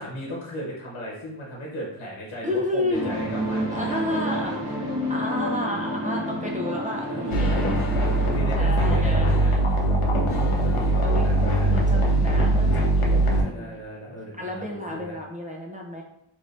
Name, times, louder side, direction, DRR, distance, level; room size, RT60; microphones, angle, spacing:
voice 1, 0.0-4.5 7.0-9.5 10.5-11.7 13.2-15.1, equal, 65° left, -4 dB, 1.0 m, -36 dB
voice 2, 2.4-3.2 3.7-4.8 5.1-7.8 8.5-9.6 11.0-13.9 14.4-16.0, left 1 dB, 15° right, -2 dB, 0.5 m, -31 dB
sound 1, 2.9-8.4, equal, 50° right, 1.0 m, -29 dB
sound 2, 7.3-13.4, right 1 dB, 90° left, 0.7 m, -21 dB
3.1 x 2.6 x 3.2 m, 0.76 s
wide cardioid pair, 85°, 48 cm